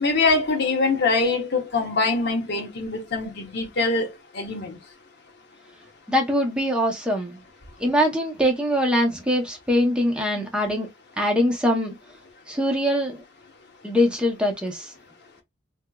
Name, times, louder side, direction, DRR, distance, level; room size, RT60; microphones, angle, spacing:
voice 1, 0.0-4.1 4.3-4.8, left 3 dB, 60° left, 0.9 m, -23 dB
voice 2, 6.1-7.4 7.8-10.9 11.2-11.9 12.5-13.2 13.8-14.9, equal, 5° right, 0.8 m, -22 dB
3.5 x 2.8 x 2.3 m
head